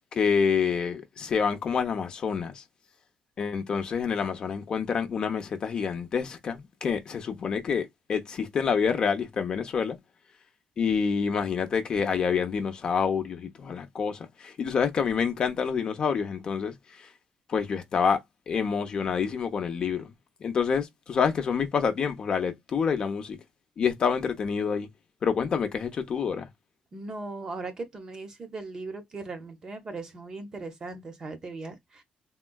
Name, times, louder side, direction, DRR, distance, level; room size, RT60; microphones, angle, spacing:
voice 1, 0.1-2.6 3.4-10.0 10.8-16.7 17.5-18.2 18.5-20.1 20.4-23.4 23.8-24.9 25.2-26.5, left 6 dB, 35° left, 0.6 m, -27 dB
voice 2, 26.9-32.0, right 3 dB, 30° right, 0.7 m, -38 dB
3.6 x 2.2 x 2.2 m
cardioid pair, 180°, 2 cm